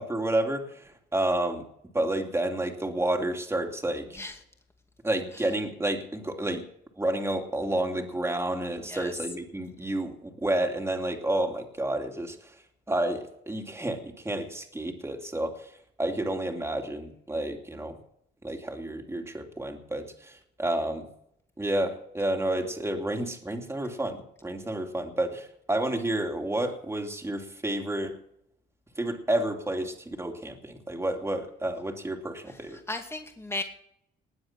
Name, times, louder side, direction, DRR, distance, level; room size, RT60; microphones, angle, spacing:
voice 1, 0.0-1.6 1.9-4.2 5.0-6.6 7.0-12.6 12.9-15.7 16.0-18.0 18.4-21.1 21.6-28.2 29.0-32.8, right 1 dB, 15° right, 3 dB, 2.8 m, -30 dB
voice 2, 8.8-9.1 32.5-33.6, left 2 dB, 10° left, 4 dB, 2.4 m, -36 dB
20.0 x 7.9 x 6.0 m, 0.72 s
cardioid pair, 90°, 20 cm